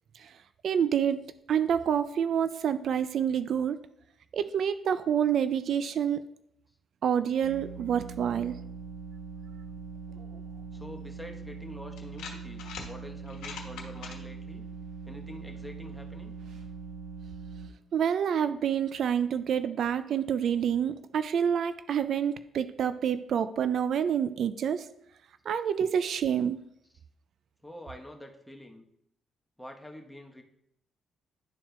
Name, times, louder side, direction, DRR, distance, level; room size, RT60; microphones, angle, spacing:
voice 1, 0.6-3.8 4.3-6.2 7.0-8.6 17.9-24.9 25.5-26.6, right 8 dB, 65° right, 12 dB, 0.3 m, -28 dB
sound 1, 7.4-17.7, right 5 dB, 85° right, 1.4 m, -42 dB
voice 2, 10.7-14.6 15.1-16.3 27.6-28.9 29.6-30.4, left 1 dB, 5° left, 2 dB, 1.0 m, -46 dB
sound 2, 11.2-11.3 12.0-12.9 13.3-14.2, left 6 dB, 85° left, 1.1 m, -41 dB
11.5 x 4.3 x 2.2 m, 0.76 s
cardioid pair, 90°, 0 cm